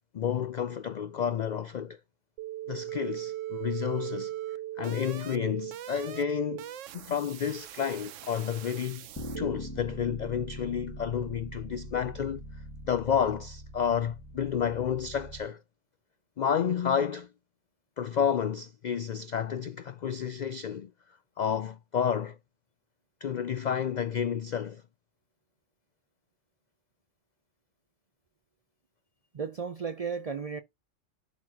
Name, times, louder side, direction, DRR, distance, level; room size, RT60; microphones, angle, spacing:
voice 1, 0.1-2.0 2.7-4.3 4.8-9.1 9.4-12.4 12.9-15.6 16.4-17.3 18.0-20.9 21.4-22.4 23.2-24.8, left 8 dB, 75° left, 0.4 m, -30 dB
sound 1, 2.4-9.5, right 13 dB, 85° right, 0.9 m, -39 dB
Bass guitar, 9.2-15.4, equal, 15° left, 2.0 m, -42 dB
voice 2, 29.3-30.6, right 6 dB, 50° right, 0.4 m, -34 dB
11.5 x 4.2 x 2.8 m
omnidirectional pair, 1.3 m